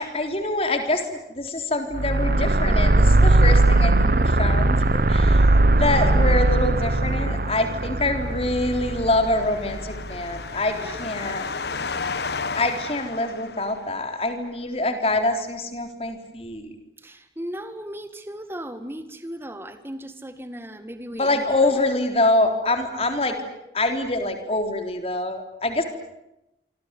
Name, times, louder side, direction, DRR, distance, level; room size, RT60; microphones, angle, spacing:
voice 1, 0.0-5.5 5.7-11.4 12.5-16.7 21.1-23.4 23.7-25.8, left 2 dB, 35° left, 6 dB, 3.8 m, -25 dB
sound 1, 1.9-10.3, right 2 dB, 50° right, 1.0 m, -19 dB
sound 2, 7.8-14.1, left 4 dB, 70° left, 1.4 m, -33 dB
voice 2, 10.7-11.1 17.0-21.9, equal, 15° right, 10 dB, 2.1 m, -37 dB
27.0 x 25.5 x 8.4 m, 0.88 s
head